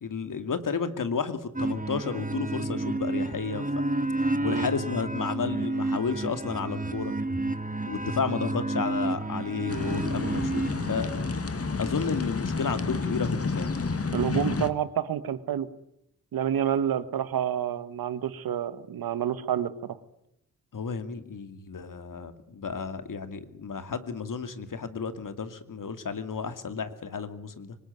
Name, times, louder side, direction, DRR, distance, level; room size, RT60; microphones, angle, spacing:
voice 1, 0.0-3.6 4.4-7.1 7.9-11.1 11.8-13.7 20.7-27.8, left 5 dB, 65° left, 10 dB, 2.5 m, -32 dB
sound 1, 1.6-11.3, right 2 dB, 25° right, 2.2 m, -30 dB
sound 2, 9.7-14.7, left 4 dB, 40° left, 2.0 m, -30 dB
voice 2, 14.1-15.7 16.3-19.7, right 9 dB, 85° right, 13 dB, 1.6 m, -28 dB
24.5 x 20.0 x 9.5 m, 0.80 s
cardioid pair, 50°, 35 cm